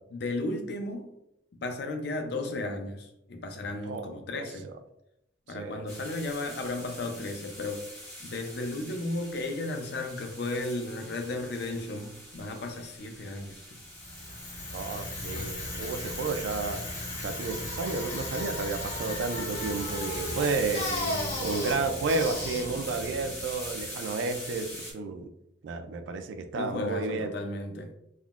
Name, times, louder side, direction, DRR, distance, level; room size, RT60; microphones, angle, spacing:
voice 1, 0.1-1.1 1.5-4.7 5.5-7.9 8.2-13.8 20.8-21.4 26.5-27.9, left 2 dB, 55° left, 5 dB, 0.4 m, -34 dB
voice 2, 3.9-4.5 5.5-5.8 14.7-16.8 17.2-20.9 21.4-25.3 25.6-27.3, right 3 dB, 65° right, 8 dB, 0.3 m, -32 dB
sound 1, 5.9-24.9, left 1 dB, 15° left, 0.7 m, -44 dB
Bicycle, 13.8-23.9, left 1 dB, 70° left, 1.4 m, -36 dB
3.5 x 2.1 x 2.3 m, 0.82 s
head